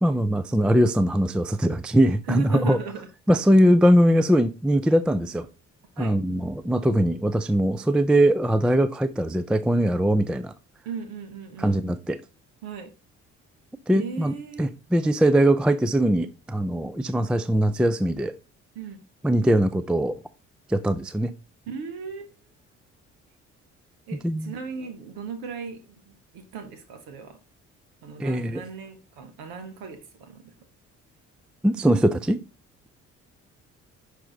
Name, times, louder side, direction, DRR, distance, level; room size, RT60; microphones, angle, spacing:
voice 1, 0.0-2.8 3.3-5.5 6.0-10.5 11.6-12.2 13.9-18.3 19.2-20.2 20.7-21.3 24.2-24.5 28.2-28.6 31.6-32.4, right 1 dB, 5° right, 0.4 m, -21 dB
voice 2, 2.3-3.1 3.5-3.6 6.0-6.2 10.8-11.8 12.6-12.9 13.9-14.7 18.7-19.0 21.7-22.3 24.1-27.4 28.0-30.5, right 5 dB, 70° right, 1.1 m, -37 dB
6.0 x 4.7 x 3.9 m
hypercardioid pair, 50°, 37 cm